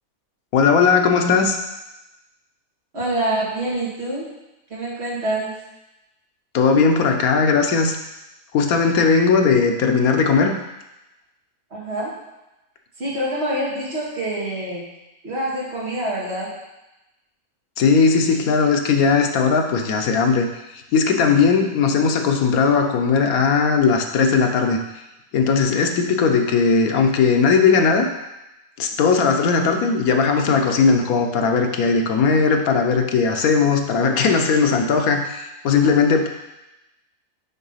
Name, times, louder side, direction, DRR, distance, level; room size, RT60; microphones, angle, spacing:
voice 1, 0.5-1.6 6.5-8.0 8.5-10.5 17.8-20.5 20.9-24.8 25.3-28.1 28.8-36.3, left 5 dB, 85° left, 4 dB, 1.3 m, -18 dB
voice 2, 2.9-4.3 4.7-5.5 11.7-12.1 13.0-14.9 15.2-16.6, right 1 dB, 50° right, -6 dB, 2.3 m, -26 dB
6.3 x 4.8 x 5.6 m, 0.97 s
omnidirectional pair, 1.5 m